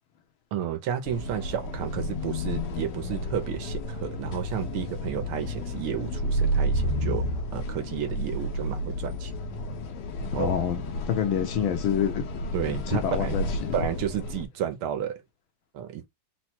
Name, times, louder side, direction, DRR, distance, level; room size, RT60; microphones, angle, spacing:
voice 1, 0.5-7.3 7.5-9.3 10.2-10.6 12.5-13.4 13.7-15.2 15.7-16.1, right 9 dB, 75° right, 1.6 m, -32 dB
sound 1, 1.0-14.5, equal, 90° left, 1.9 m, -31 dB
voice 2, 10.4-10.8 11.1-12.3 12.7-13.7, left 9 dB, 70° left, 1.6 m, -27 dB
4.4 x 2.3 x 4.2 m
omnidirectional pair, 2.4 m